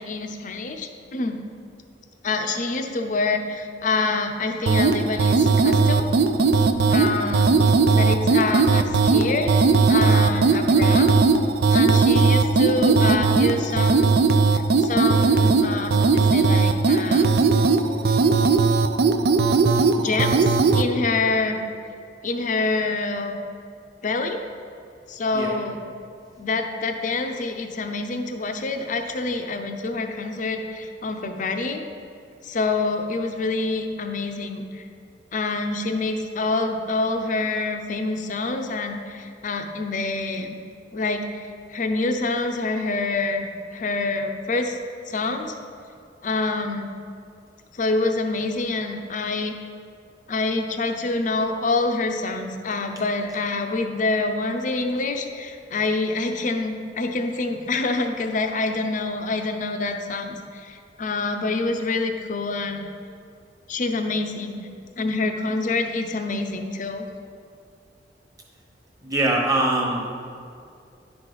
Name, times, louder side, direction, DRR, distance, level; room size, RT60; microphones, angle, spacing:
voice 1, 0.0-1.4 2.2-6.1 6.6-7.5 7.9-9.5 9.9-11.1 11.7-14.1 14.5-17.3 19.9-21.6 22.2-23.4 24.0-24.4 25.1-25.8 26.4-31.8 32.4-34.9 35.3-40.6 40.9-43.5 43.7-44.8 45.1-45.5 46.2-46.9 47.7-49.5 50.3-62.9 63.7-64.7 65.0-67.1, left 3 dB, 45° left, 5 dB, 0.6 m, -26 dB
sound 1, 4.7-20.9, right 4 dB, 60° right, 0.4 m, -18 dB
voice 2, 69.0-70.0, right 2 dB, 20° right, -1 dB, 1.1 m, -22 dB
10.5 x 4.9 x 3.9 m, 2.3 s
head